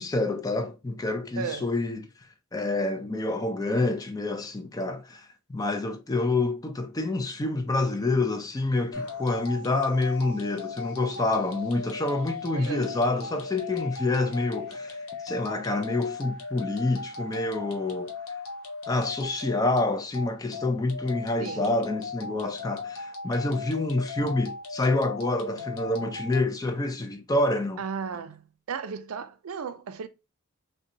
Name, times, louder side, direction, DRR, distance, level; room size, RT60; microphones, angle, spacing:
voice 1, 0.0-2.1 2.5-15.0 15.2-18.1 18.9-27.8, left 2 dB, 15° left, 0.3 m, -27 dB
voice 2, 1.3-1.7 12.5-12.8 21.4-21.7 25.5-25.6 27.8-28.4 28.7-30.1, right 6 dB, 80° right, 0.4 m, -35 dB
sound 1, 8.9-26.4, left 4 dB, 80° left, 0.9 m, -38 dB
3.8 x 2.2 x 2.6 m
head